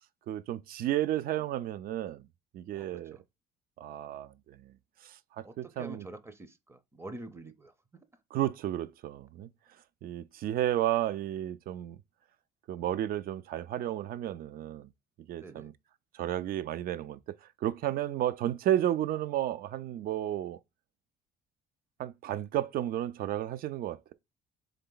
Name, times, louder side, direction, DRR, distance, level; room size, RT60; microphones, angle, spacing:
voice 1, 0.3-2.3 2.5-3.2 3.8-4.8 5.0-6.1 8.3-9.5 10.0-12.0 12.7-14.9 15.3-15.7 16.1-20.6 22.0-24.1, right 12 dB, 60° right, 0.4 m, -32 dB
voice 2, 2.7-3.2 5.4-7.7 15.4-15.7, right 2 dB, 15° right, 0.6 m, -46 dB
4.0 x 3.3 x 3.8 m
cardioid pair, 110°, 17 cm